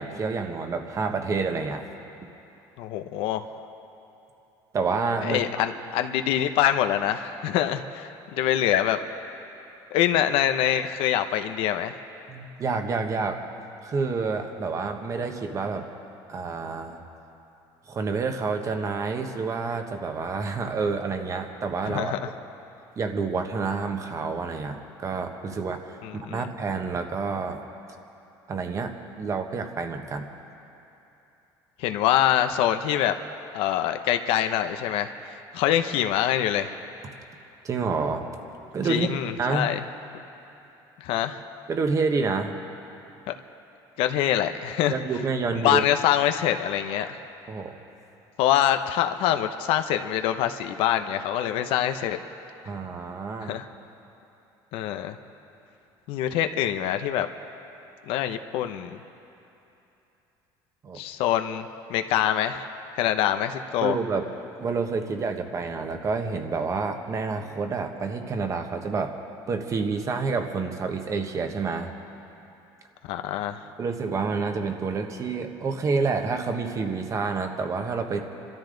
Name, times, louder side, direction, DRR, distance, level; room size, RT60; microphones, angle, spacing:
voice 1, 0.0-1.8 4.7-5.6 12.3-13.4 13.8-15.9 16.3-17.0 17.9-22.2 23.0-27.6 28.5-30.2 37.6-38.2 38.7-39.1 39.4-39.7 41.7-42.6 44.9-45.8 47.5-47.8 52.6-53.6 60.8-61.0 63.8-64.3 64.6-69.2 69.5-71.9 73.8-78.2, right 4 dB, 35° right, 5 dB, 1.4 m, -28 dB
voice 2, 2.8-3.4 5.2-9.0 9.9-12.0 21.8-22.3 26.0-26.5 31.8-33.1 33.5-36.7 38.9-39.8 41.0-41.4 43.3-43.4 44.0-45.0 45.6-47.2 48.4-52.2 53.4-53.7 54.7-55.2 56.1-57.3 58.1-59.0 60.9-62.7 63.0-64.0 73.1-73.6, left 11 dB, 75° left, 8 dB, 0.8 m, -25 dB
27.5 x 13.0 x 3.9 m, 2.9 s
cardioid pair, 120°, 9 cm